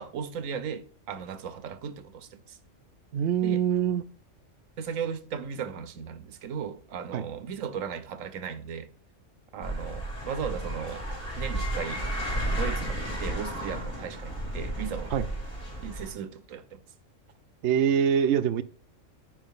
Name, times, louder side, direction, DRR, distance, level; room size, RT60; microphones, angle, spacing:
voice 1, 0.0-2.6 3.4-3.6 4.8-8.9 9.5-11.0 11.4-12.1 12.3-15.1 15.8-16.8, right 7 dB, 90° right, 1.2 m, -36 dB
voice 2, 3.1-4.0 7.1-7.2 15.1-15.3 17.6-18.6, right 8 dB, 70° right, 0.8 m, -24 dB
sound 1, 9.6-16.1, right 1 dB, 45° left, 3.2 m, -33 dB
9.0 x 5.2 x 3.7 m
omnidirectional pair, 1.3 m